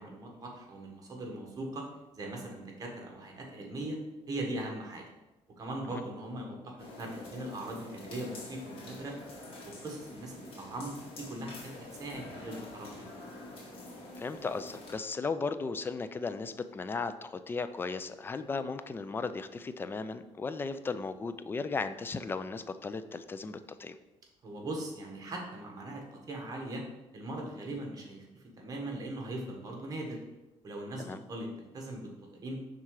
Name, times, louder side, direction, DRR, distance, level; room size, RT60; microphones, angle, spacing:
voice 1, 0.0-1.9 2.1-4.0 4.3-5.0 5.6-9.2 9.6-13.1 24.4-26.8 27.1-30.2 30.6-32.1 32.4-32.6, right 1 dB, 35° right, 1 dB, 1.4 m, -40 dB
sound 1, 6.8-15.0, left 2 dB, 60° left, 2.0 m, -47 dB
voice 2, 14.2-24.0 31.0-31.2, left 4 dB, 20° left, 11 dB, 0.3 m, -36 dB
5.6 x 3.7 x 4.7 m, 1.0 s
cardioid pair, 120°, 11 cm